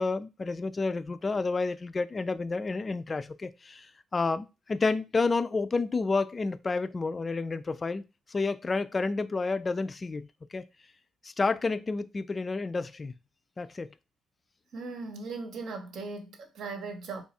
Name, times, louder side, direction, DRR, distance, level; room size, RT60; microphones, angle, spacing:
voice 1, 0.0-3.9 4.1-8.0 8.3-10.6 11.2-13.1 13.6-13.9, left 3 dB, 30° left, 0.3 m, -30 dB
voice 2, 14.7-17.2, right 3 dB, 70° right, 0.9 m, -38 dB
3.0 x 2.4 x 4.1 m
cardioid pair, 90°, 0 cm